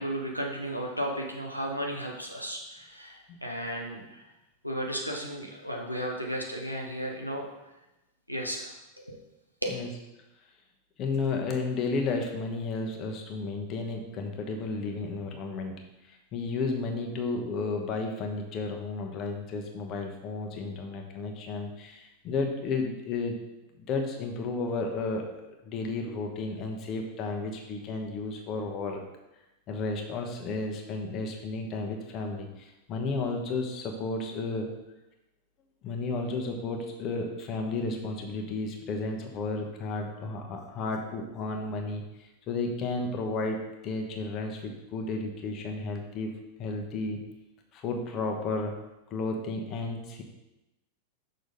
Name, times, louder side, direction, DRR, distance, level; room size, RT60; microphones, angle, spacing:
voice 1, 0.0-4.3 4.6-7.4 8.3-8.7 9.0-9.2 9.6-9.8, equal, 90° right, 0 dB, 0.9 m, -34 dB
voice 2, 11.0-15.8 16.1-23.4 23.8-29.0 29.7-34.7 35.8-47.2 47.7-48.7 49.1-50.2, left 3 dB, 35° left, 2 dB, 1.1 m, -33 dB
6.4 x 4.0 x 5.2 m, 0.97 s
figure-of-eight pair, 90°, 0 cm